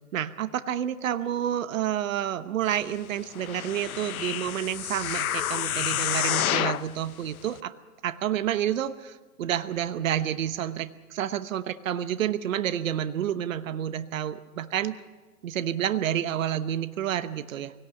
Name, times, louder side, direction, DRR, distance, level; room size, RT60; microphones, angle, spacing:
voice 1, 0.1-7.7 8.0-14.9 15.4-17.7, right 10 dB, 55° right, 12 dB, 1.1 m, -29 dB
sound 1, 3.3-6.9 7.5-7.6, left 11 dB, 65° left, 0.9 m, -29 dB
24.0 x 18.0 x 7.0 m, 1.2 s
hypercardioid pair, 160°, 46 cm